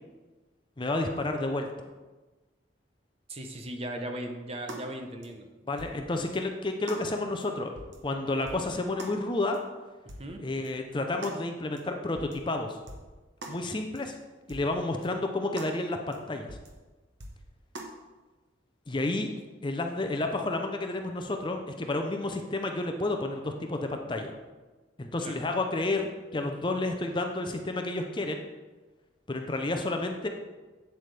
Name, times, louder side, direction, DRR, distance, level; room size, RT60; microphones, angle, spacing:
voice 1, 0.8-1.9 5.7-7.7 8.0-9.6 10.4-12.8 13.5-14.2 14.5-16.6 18.9-19.3 19.6-24.4 25.0-28.5 29.3-30.3, left 2 dB, 25° left, 4 dB, 0.5 m, -31 dB
voice 2, 3.3-5.5 10.2-10.5 25.2-25.4, right 1 dB, 30° right, 4 dB, 0.7 m, -38 dB
sound 1, 4.7-4.9 5.2-5.3 5.8-6.0 6.3-6.4 6.9-7.0 7.4-7.5 7.8-8.0 8.5-8.7 9.0-9.2 9.5-9.6 10.1-10.3 10.6-10.7 11.2-11.4 11.8-11.9 12.2-12.4 12.9-13.1 13.4-13.6 14.0-14.1 14.5-14.7 15.0-15.1 15.6-15.7 16.1-16.2 16.5-16.7 17.2-17.4 17.8-17.9, right 1 dB, 65° right, 1.1 m, -42 dB
8.3 x 7.7 x 3.3 m, 1.2 s
head